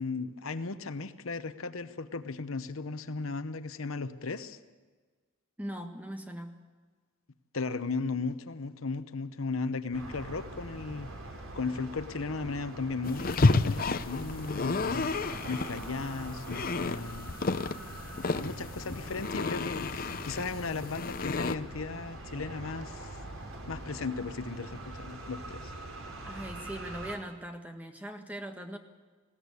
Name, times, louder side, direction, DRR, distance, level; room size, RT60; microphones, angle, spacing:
voice 1, 0.0-4.6 7.5-11.1 11.5-15.1 15.5-17.3 18.4-23.2 23.7-25.7, left 4 dB, 70° left, 12 dB, 0.9 m, -36 dB
voice 2, 5.6-6.6 26.2-28.8, right 1 dB, 5° right, 5 dB, 1.6 m, -40 dB
sound 1, 9.9-27.2, right 2 dB, 70° right, 3.6 m, -43 dB
sound 2, 13.0-21.5, left 3 dB, 40° left, 0.7 m, -31 dB
20.5 x 17.0 x 8.3 m, 1.4 s
head